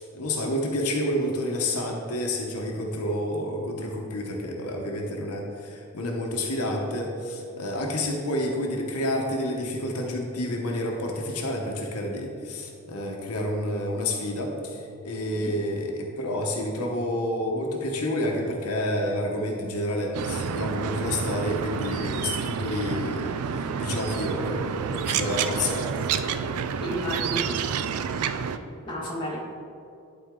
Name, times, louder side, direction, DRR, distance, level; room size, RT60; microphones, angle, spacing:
voice 1, 0.0-26.1, left 1 dB, 85° left, 0 dB, 0.9 m, -29 dB
sound 1, 20.1-28.6, right 6 dB, 80° right, 0.4 m, -29 dB
voice 2, 26.8-27.5 28.2-28.6 28.8-29.4, equal, 20° left, -6 dB, 1.6 m, -32 dB
11.5 x 4.2 x 3.7 m, 2.5 s
head